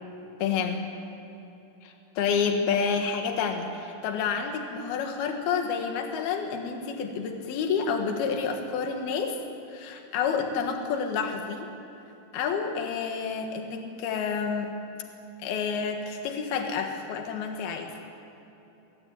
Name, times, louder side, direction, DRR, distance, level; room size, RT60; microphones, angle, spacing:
voice 1, 0.4-0.9 1.8-9.4 9.7-11.7 12.3-14.7 15.4-17.9, left 6 dB, 75° left, 4 dB, 3.6 m, -29 dB
22.0 x 20.5 x 9.0 m, 3.0 s
omnidirectional pair, 4.4 m